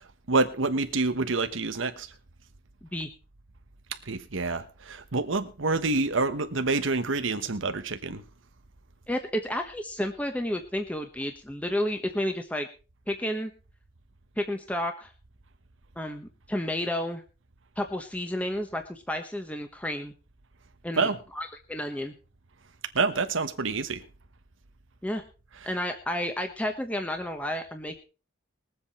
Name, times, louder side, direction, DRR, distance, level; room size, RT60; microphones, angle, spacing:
voice 1, 0.3-2.1 4.1-8.2 21.0-21.2 22.9-24.0, right 3 dB, 85° right, 1.2 m, -27 dB
voice 2, 9.1-12.7 13.1-13.5 14.4-15.1 16.0-17.2 17.8-20.1 20.8-22.1 25.0-25.2 25.6-28.0, left 1 dB, 5° left, 1.1 m, -31 dB
21.5 x 8.0 x 4.3 m
head